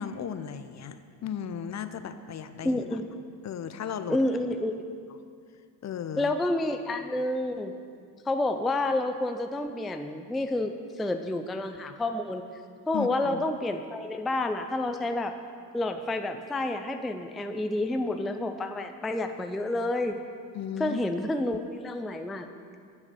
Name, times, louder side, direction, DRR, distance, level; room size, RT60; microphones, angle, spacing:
voice 1, 0.0-2.8 3.4-4.2 5.8-6.3 12.9-13.5 20.5-21.0, left 8 dB, 35° left, 10 dB, 0.6 m, -35 dB
voice 2, 2.6-3.1 4.1-4.8 6.2-7.8 8.3-12.4 12.9-15.3 15.7-20.2 20.8-22.5, left 2 dB, ahead, 7 dB, 0.3 m, -29 dB
8.5 x 7.1 x 6.7 m, 2.2 s
supercardioid pair, 75°, 50 cm